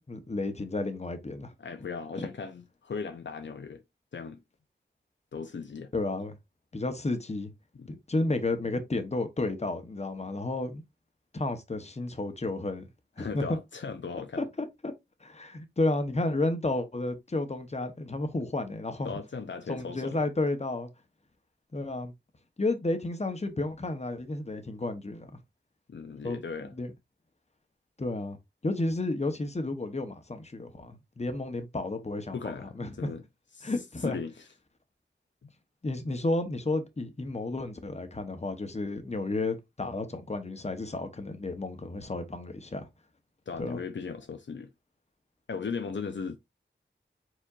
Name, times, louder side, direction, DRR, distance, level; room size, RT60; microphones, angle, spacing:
voice 1, 0.1-1.5 2.2-2.3 5.9-6.4 6.7-7.5 7.9-10.8 11.3-12.9 13.2-13.5 14.4-14.9 15.2-19.1 19.7-20.9 21.7-22.1 22.6-25.3 26.2-26.4 26.7-26.9 28.0-28.4 28.6-33.1 33.6-34.2 35.8-42.9 43.6-43.8, left 2 dB, 35° left, 0.9 m, -32 dB
voice 2, 1.6-3.8 4.1-4.4 5.3-5.9 7.7-7.9 13.2-14.4 19.0-20.2 25.9-26.7 32.3-33.2 33.6-33.7 34.0-34.3 35.4-35.5 43.5-44.7 45.5-46.4, left 5 dB, 70° left, 0.6 m, -37 dB
4.7 x 4.2 x 2.5 m
wide cardioid pair, 70°, 19 cm